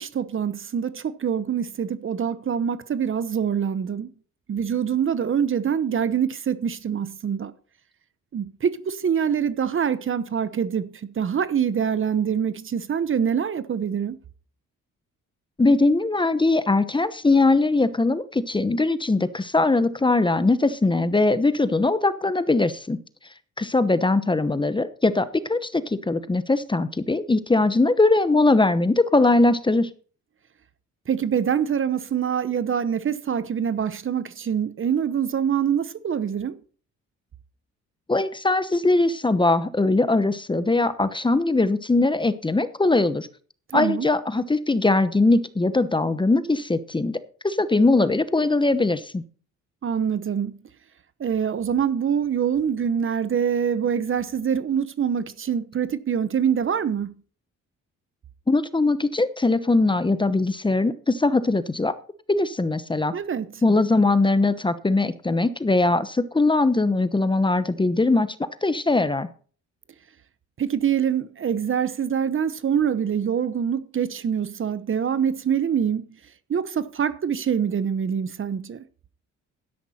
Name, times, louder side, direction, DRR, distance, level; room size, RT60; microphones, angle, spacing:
voice 1, 0.0-4.1 4.5-7.5 8.3-14.2 31.1-36.6 43.7-44.1 49.8-50.6 51.2-57.1 63.1-63.5 70.6-76.1 76.5-78.8, right 8 dB, 45° right, 1.0 m, -25 dB
voice 2, 15.6-23.0 23.6-29.9 38.1-43.3 43.7-47.2 47.4-49.2 58.5-61.9 62.3-63.1 63.6-68.3 68.6-69.3, left 2 dB, 15° left, 0.9 m, -21 dB
12.5 x 10.5 x 4.3 m
cardioid pair, 90°, 30 cm